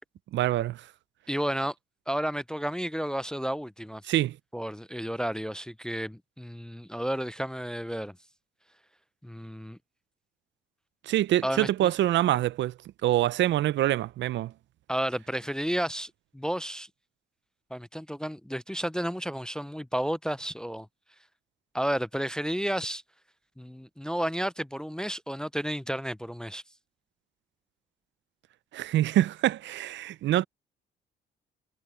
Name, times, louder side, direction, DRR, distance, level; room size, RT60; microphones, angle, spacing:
voice 1, 0.3-0.8 4.1-4.4 11.0-12.7 13.0-14.5 28.7-30.4, right 13 dB, 70° right, 0.5 m, -25 dB
voice 2, 1.3-1.7 2.1-4.0 4.5-8.2 9.2-9.8 11.4-11.9 14.9-16.9 17.7-20.9 21.7-23.0 23.6-26.6, equal, 5° left, 0.4 m, -32 dB
cardioid pair, 90°, 20 cm